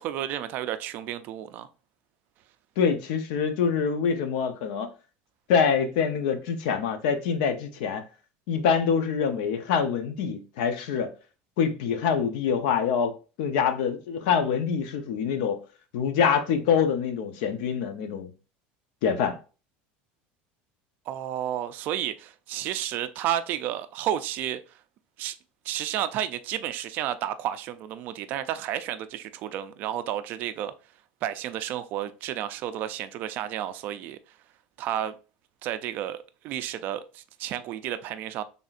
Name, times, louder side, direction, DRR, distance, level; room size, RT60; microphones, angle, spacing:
voice 1, 0.0-1.7 21.1-24.6 25.2-25.4 25.7-30.7 31.2-34.2 34.8-35.2 35.6-38.4, right 11 dB, 45° right, 0.3 m, -31 dB
voice 2, 2.8-4.9 5.5-8.0 8.5-11.1 11.6-13.1 13.4-15.6 15.9-18.3 19.0-19.4, left 7 dB, 75° left, 0.7 m, -25 dB
4.0 x 3.5 x 2.4 m
cardioid pair, 165°, 4 cm